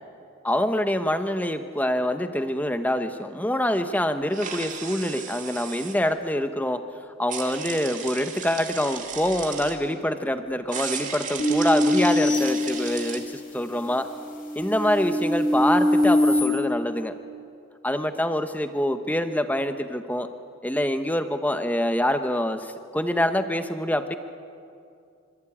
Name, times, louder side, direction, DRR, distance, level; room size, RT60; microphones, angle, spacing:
voice 1, 0.4-6.8 7.2-14.1 14.5-17.2 17.8-20.3 20.6-24.2, left 1 dB, 5° left, 8 dB, 1.1 m, -25 dB
sound 1, 4.3-6.0 7.3-9.8 10.7-13.2, right 6 dB, 35° right, 2.6 m, -35 dB
sound 2, 11.4-13.3 13.9-16.4, left 1 dB, 40° left, 4.6 m, -23 dB
26.5 x 25.5 x 8.7 m, 2.5 s
head